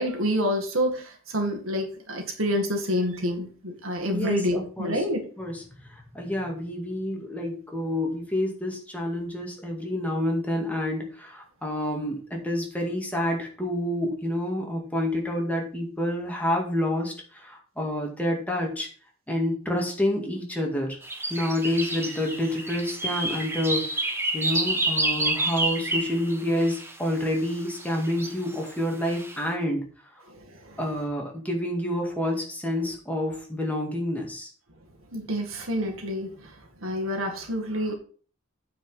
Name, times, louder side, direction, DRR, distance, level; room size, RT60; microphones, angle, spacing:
voice 1, 0.0-5.2 30.3-30.7 35.1-36.5 36.8-37.9, equal, 70° right, 2 dB, 2.1 m, -28 dB
voice 2, 4.1-5.0 5.4-18.9 19.3-21.0 21.3-29.8 30.8-34.5, left 1 dB, 5° left, 0 dB, 2.1 m, -28 dB
sound 1, 21.0-26.9 27.8-28.6 29.0-29.4, right 2 dB, 10° right, 1.3 m, -29 dB
8.8 x 5.1 x 5.6 m, 0.41 s
head